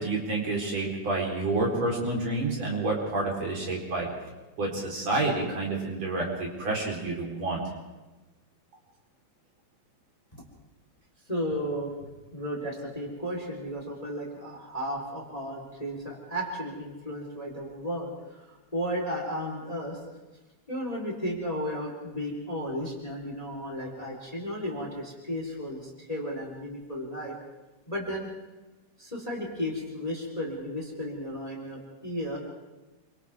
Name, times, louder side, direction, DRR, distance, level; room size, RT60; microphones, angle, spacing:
voice 1, 0.0-4.1 4.6-7.6, right 2 dB, 55° right, -2 dB, 5.3 m, -29 dB
voice 2, 11.3-11.9 12.3-18.1 18.5-20.0 20.7-27.3 27.9-28.3 29.0-32.4, equal, 10° left, -1 dB, 3.9 m, -34 dB
28.0 x 25.0 x 3.7 m, 1.1 s
omnidirectional pair, 3.6 m